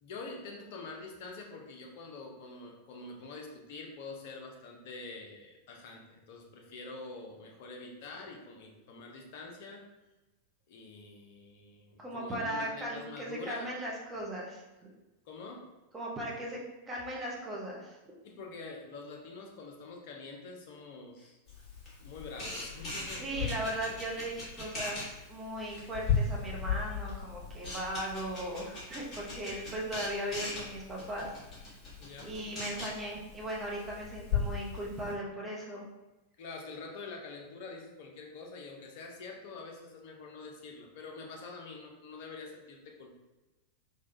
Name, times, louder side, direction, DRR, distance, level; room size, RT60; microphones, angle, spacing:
voice 1, 0.0-9.9 10.7-13.7 15.3-15.7 18.2-21.4 22.0-23.6 32.0-32.3 36.4-43.1, left 3 dB, 50° left, 1 dB, 0.6 m, -46 dB
voice 2, 12.0-14.6 15.9-16.6 16.9-18.0 23.1-31.3 32.2-35.9, right 1 dB, 15° right, -3 dB, 0.7 m, -38 dB
Camera, 21.5-35.1, left 5 dB, 30° left, 1.4 m, -37 dB
3.3 x 2.2 x 2.6 m, 1.1 s
figure-of-eight pair, 90°, 0 cm